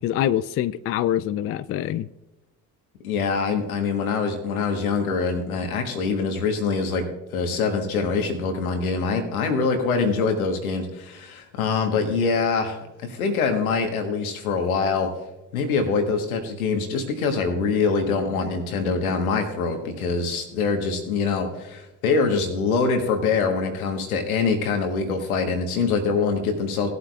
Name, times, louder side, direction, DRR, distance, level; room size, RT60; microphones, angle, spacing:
voice 1, 0.0-2.1, left 11 dB, 35° left, 0.4 m, -25 dB
voice 2, 3.0-7.0 7.3-15.1 15.5-26.9, left 4 dB, 80° left, 1.3 m, -24 dB
16.5 x 8.1 x 2.3 m
figure-of-eight pair, 50°, 42 cm